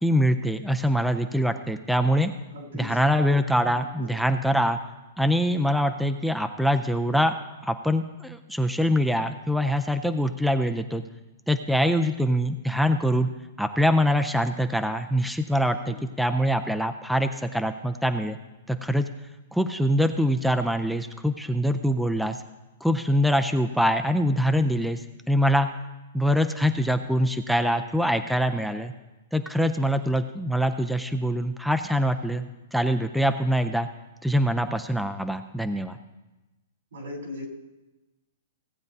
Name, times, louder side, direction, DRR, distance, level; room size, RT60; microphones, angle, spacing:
voice 1, 0.0-2.3 2.7-4.8 5.2-7.3 7.6-11.0 11.5-13.3 13.6-18.4 18.7-19.1 19.5-22.4 22.8-25.7 26.1-28.9 29.3-32.4 32.7-33.9 34.2-36.0, equal, ahead, 6 dB, 0.4 m, -24 dB
voice 2, 2.5-3.0 3.7-4.1 15.8-16.0 36.9-37.5, left 2 dB, 85° right, 0 dB, 3.3 m, -38 dB
17.5 x 8.5 x 2.7 m, 1.1 s
hypercardioid pair, 150°, 0 cm